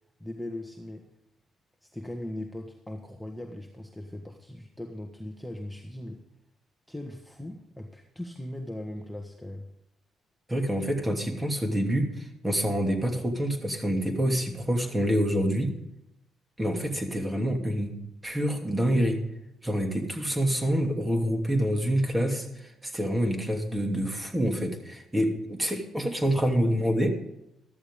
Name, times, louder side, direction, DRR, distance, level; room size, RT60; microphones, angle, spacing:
voice 1, 0.2-1.1 1.8-6.2 6.9-9.7, left 1 dB, ahead, 2 dB, 1.6 m, -39 dB
voice 2, 10.5-15.7 16.6-17.9 18.2-19.2 19.6-27.1, equal, 15° right, 3 dB, 2.7 m, -27 dB
13.5 x 13.5 x 3.7 m, 0.85 s
cardioid pair, 90°, 0 cm